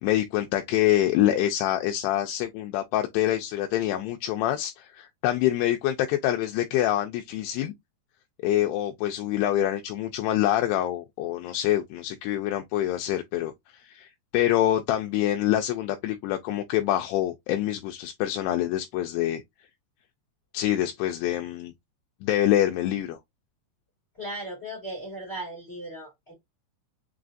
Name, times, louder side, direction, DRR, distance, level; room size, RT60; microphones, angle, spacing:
voice 1, 0.0-7.7 8.4-19.4 20.5-21.7 22.2-23.2, left 13 dB, 85° left, 2.4 m, -26 dB
voice 2, 24.2-26.3, right 1 dB, 50° left, 0.7 m, -37 dB
6.7 x 2.4 x 2.4 m
omnidirectional pair, 5.1 m